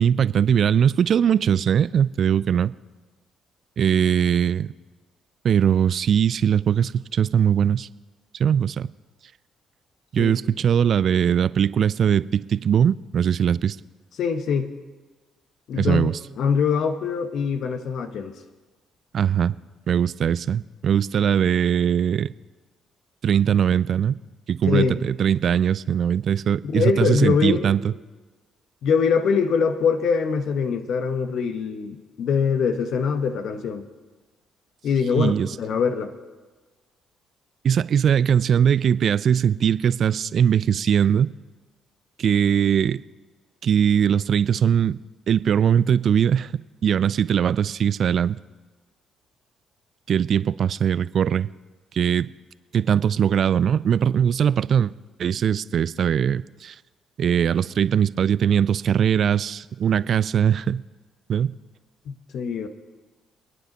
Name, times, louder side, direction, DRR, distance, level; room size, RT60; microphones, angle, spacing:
voice 1, 0.0-2.7 3.8-4.7 5.4-7.9 8.3-8.9 10.1-13.8 15.8-16.2 19.1-19.5 19.9-22.3 23.2-24.2 24.5-27.9 35.2-35.5 37.6-41.3 42.2-43.0 43.6-45.0 45.3-48.4 50.1-51.5 51.9-52.3 52.7-54.9 55.2-56.8 57.2-60.8 61.3-61.6, right 8 dB, 55° right, 19 dB, 0.3 m, -20 dB
voice 2, 14.2-14.7 15.7-16.1 16.4-18.3 24.7-25.0 26.6-27.7 28.8-33.8 34.8-36.1 62.1-62.7, left 6 dB, 60° left, 8 dB, 1.0 m, -23 dB
27.0 x 9.8 x 3.0 m, 1.3 s
hypercardioid pair, 45°, 0 cm